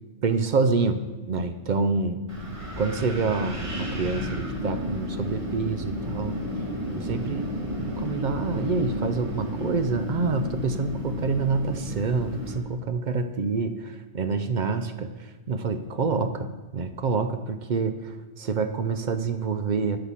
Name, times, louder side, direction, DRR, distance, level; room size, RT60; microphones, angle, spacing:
voice 1, 0.2-1.0 1.3-2.2 2.8-6.4 6.9-7.5 7.9-15.1 15.5-16.5 16.7-20.0, right 4 dB, 55° right, 9 dB, 0.5 m, -27 dB
Wind, 2.3-12.6, equal, 25° right, 1.6 m, -32 dB
8.1 x 5.7 x 7.3 m, 1.2 s
omnidirectional pair, 1.3 m